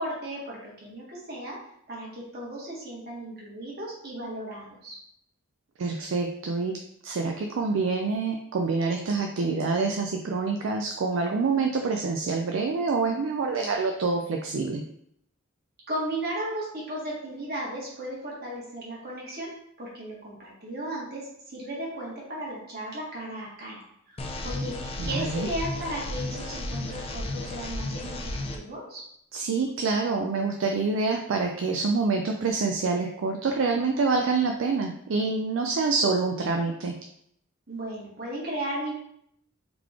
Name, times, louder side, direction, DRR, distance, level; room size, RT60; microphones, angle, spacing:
voice 1, 0.0-1.6 1.9-5.0 15.9-19.5 19.8-29.0 37.7-38.9, right 1 dB, 50° right, -4 dB, 1.5 m, -35 dB
voice 2, 5.8-6.8 7.0-14.8 25.0-25.5 29.3-36.9, right 4 dB, 65° right, 3 dB, 0.4 m, -26 dB
sound 1, 24.2-28.6, left 2 dB, 25° left, 0.4 m, -33 dB
3.9 x 3.1 x 3.5 m, 0.72 s
head